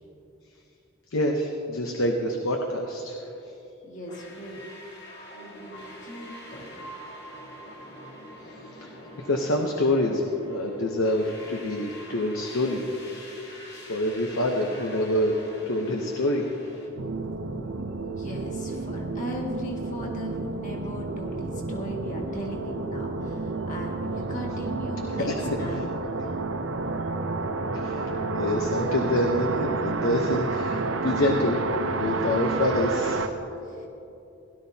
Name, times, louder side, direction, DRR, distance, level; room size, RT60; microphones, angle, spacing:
voice 1, 1.1-3.5 8.5-8.9 9.2-12.8 13.9-15.4 15.7-16.4 25.1-25.8 27.7-31.6 31.9-33.3, left 1 dB, 70° left, 2 dB, 0.9 m, -26 dB
voice 2, 3.8-4.6 5.3-6.9 18.0-25.3 25.6-25.8 33.7-33.9, equal, 35° left, -2 dB, 1.8 m, -38 dB
sound 1, 4.1-16.9, equal, 50° left, 2.0 m, -44 dB
sound 2, 17.0-33.3, right 3 dB, 65° right, 0.6 m, -30 dB
17.5 x 12.0 x 2.8 m, 2.8 s
head